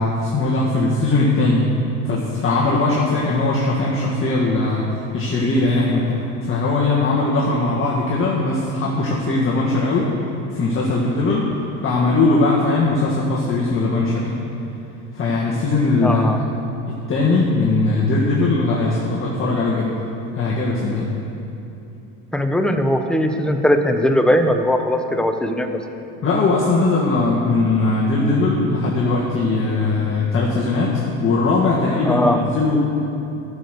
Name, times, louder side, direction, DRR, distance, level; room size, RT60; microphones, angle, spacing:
voice 1, 0.0-10.2 10.5-11.6 11.8-14.4 15.1-16.5 16.9-20.0 20.3-21.1 26.2-32.8, left 2 dB, 35° left, -5 dB, 1.8 m, -20 dB
voice 2, 16.0-16.4 22.3-25.8 32.0-32.5, left 1 dB, ahead, 5 dB, 0.8 m, -19 dB
12.5 x 6.4 x 6.9 m, 2.9 s
supercardioid pair, 105°, 37 cm